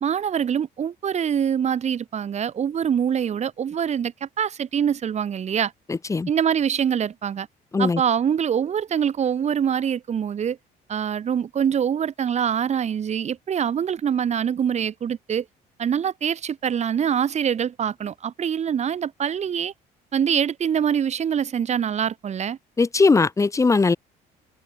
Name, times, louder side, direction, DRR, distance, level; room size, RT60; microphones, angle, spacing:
voice 1, 0.0-5.7 6.3-7.5 7.8-10.6 10.9-15.4 15.8-19.7 20.1-22.6, right 8 dB, 40° right, 1.5 m, -24 dB
voice 2, 5.9-6.3 7.7-8.0 22.8-24.0, left 4 dB, 20° left, 0.9 m, -19 dB
cardioid pair, 110°, 17 cm